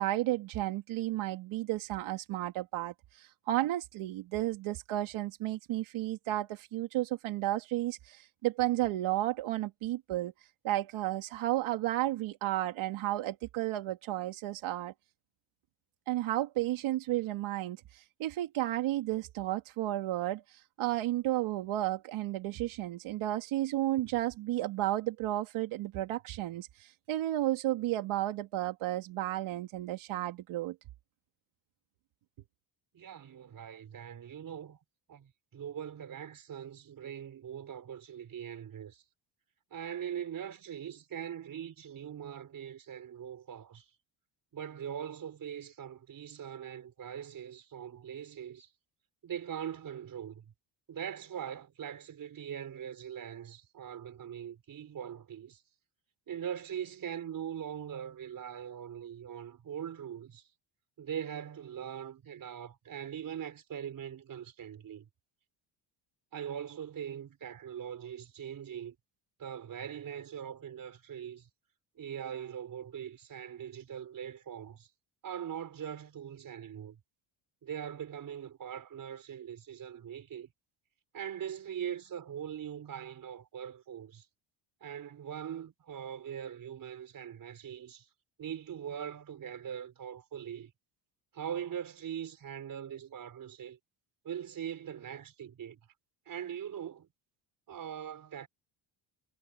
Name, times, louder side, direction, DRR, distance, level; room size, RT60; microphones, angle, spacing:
voice 1, 0.0-10.3 10.6-14.9 16.1-30.8, right 15 dB, 80° right, 2.8 m, -33 dB
voice 2, 32.9-34.8 35.1-39.0 39.7-43.9 44.5-48.7 49.2-50.5 50.9-55.6 56.3-60.4 61.0-65.1 66.3-68.9 69.4-71.5 72.0-74.9 75.2-77.0 77.6-80.5 81.1-84.3 84.8-88.1 88.4-90.7 91.3-93.8 94.2-95.8 96.3-97.1 97.7-98.5, right 9 dB, 45° right, 4.6 m, -41 dB
cardioid pair, 140°, 47 cm